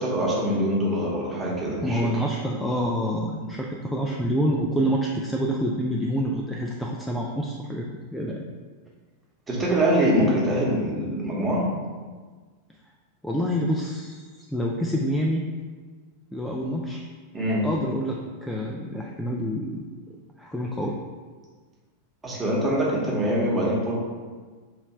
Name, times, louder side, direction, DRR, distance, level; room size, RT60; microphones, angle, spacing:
voice 1, 0.0-2.1 9.5-11.7 17.3-17.7 22.2-23.9, equal, 15° right, -4 dB, 1.1 m, -24 dB
voice 2, 1.8-8.5 13.2-15.5 16.3-17.0 17.6-19.8 20.4-21.0, equal, 5° left, -1 dB, 0.4 m, -27 dB
3.7 x 3.0 x 4.3 m, 1.4 s
figure-of-eight pair, 90°, 0 cm